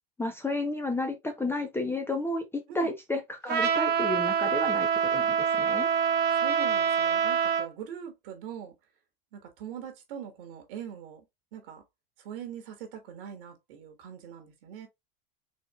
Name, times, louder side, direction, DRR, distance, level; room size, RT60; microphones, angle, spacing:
voice 1, 0.2-5.9, left 2 dB, 10° left, 0.6 m, -32 dB
Trumpet, 3.5-7.7, right 7 dB, 35° right, 0.9 m, -25 dB
voice 2, 6.3-8.7 9.3-11.3 11.5-11.8 12.2-14.9, right 8 dB, 65° right, 1.6 m, -42 dB
4.3 x 3.1 x 3.0 m
hypercardioid pair, 105°, 29 cm